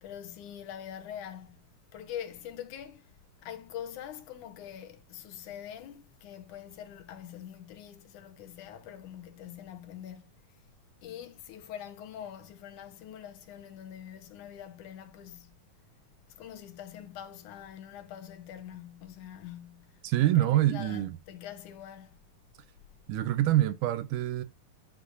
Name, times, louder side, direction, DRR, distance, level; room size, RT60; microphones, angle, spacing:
voice 1, 0.0-1.6 1.9-3.1 3.4-10.3 11.0-15.6 16.4-22.2, left 10 dB, 70° left, 2.4 m, -44 dB
voice 2, 20.0-21.2 23.1-24.4, right 14 dB, 80° right, 1.9 m, -25 dB
11.5 x 5.7 x 2.6 m
omnidirectional pair, 3.9 m